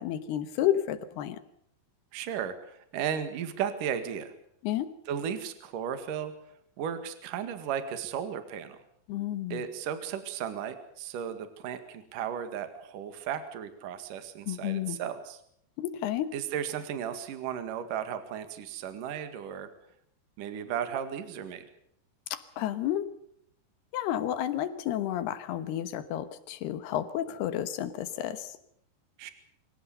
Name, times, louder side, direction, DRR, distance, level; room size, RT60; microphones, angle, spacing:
voice 1, 0.0-1.4 4.6-4.9 9.1-9.6 14.5-15.0 15.8-16.3 22.3-23.1 23.9-28.6, left 11 dB, 75° left, 12 dB, 3.0 m, -31 dB
voice 2, 2.1-4.3 5.1-6.3 6.8-8.8 9.5-15.4 16.3-19.7 20.4-21.6 29.2-29.3, right 8 dB, 55° right, 9 dB, 3.2 m, -35 dB
25.5 x 16.5 x 6.8 m, 0.70 s
omnidirectional pair, 5.0 m